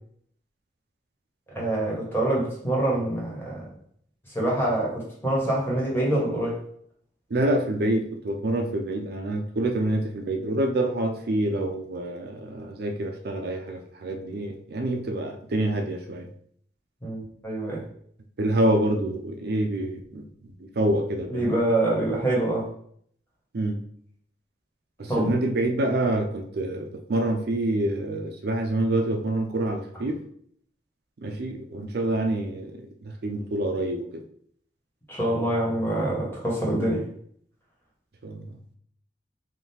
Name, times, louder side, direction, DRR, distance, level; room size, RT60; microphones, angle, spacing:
voice 1, 1.5-3.7 4.3-6.6 17.0-17.8 21.3-22.7 25.1-25.3 35.1-37.0, right 1 dB, 15° left, -4 dB, 1.3 m, -25 dB
voice 2, 7.3-16.3 18.4-21.5 23.5-23.8 25.0-30.2 31.2-34.2 38.2-38.5, right 1 dB, 60° right, 4 dB, 0.5 m, -27 dB
3.7 x 2.3 x 4.2 m, 0.63 s
head